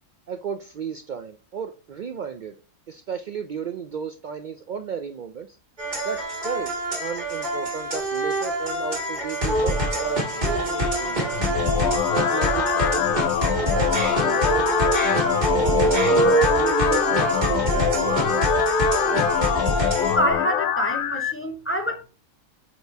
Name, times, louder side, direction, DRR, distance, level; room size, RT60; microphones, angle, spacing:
voice 1, 0.3-2.5 2.9-5.5 6.0-6.7 7.0-11.4 12.1-14.7 15.5-18.4, right 7 dB, 85° right, 0.4 m, -34 dB
sound 1, 5.8-20.2, right 1 dB, 35° right, 2.0 m, -24 dB
sound 2, 11.3-21.3, left 11 dB, 80° left, 1.0 m, -24 dB
voice 2, 20.0-22.0, equal, 15° left, 0.5 m, -26 dB
8.0 x 2.9 x 4.5 m
omnidirectional pair, 1.4 m